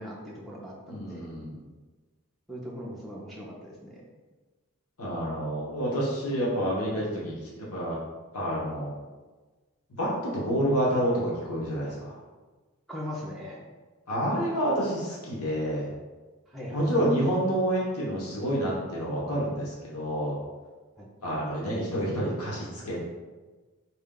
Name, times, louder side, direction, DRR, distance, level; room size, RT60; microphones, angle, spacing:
voice 1, 0.0-1.3 2.5-4.0 12.9-13.6 16.5-17.1 21.0-21.1, equal, ahead, -5 dB, 0.4 m, -40 dB
voice 2, 0.9-1.6 5.0-8.0 8.3-8.9 10.0-12.2 14.1-15.9 16.7-20.4 21.2-23.1, equal, 85° left, -5 dB, 0.9 m, -28 dB
4.2 x 2.2 x 3.7 m, 1.3 s
head